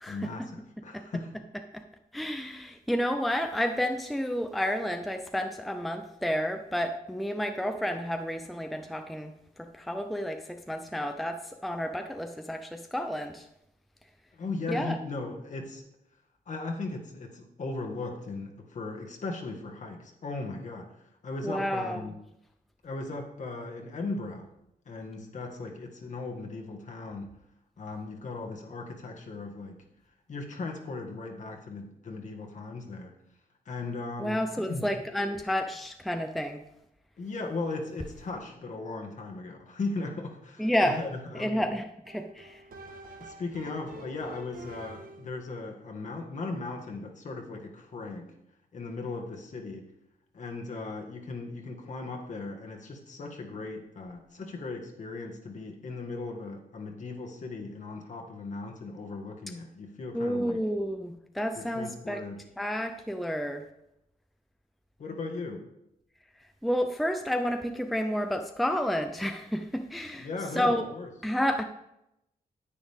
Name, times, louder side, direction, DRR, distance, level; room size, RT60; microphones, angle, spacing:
voice 1, 0.1-1.3 14.3-15.8 16.5-22.2 22.8-24.5 24.8-27.3 27.8-29.8 30.3-33.1 33.6-34.4 34.7-34.9 37.2-41.7 43.2-48.3 48.7-49.9 50.3-60.6 61.5-62.4 65.0-65.6 70.2-71.1, left 3 dB, 55° left, 2 dB, 1.6 m, -37 dB
voice 2, 2.1-9.3 9.6-13.5 14.7-15.0 21.4-22.0 34.2-36.6 40.6-41.1 41.4-42.6 60.1-62.2 62.6-63.7 66.6-70.3 70.6-70.8 71.2-71.6, equal, ahead, 6 dB, 0.5 m, -30 dB
sound 1, 42.0-45.4, right 2 dB, 65° right, 1.5 m, -47 dB
10.0 x 9.3 x 3.5 m, 0.83 s
wide cardioid pair, 145°, 15 cm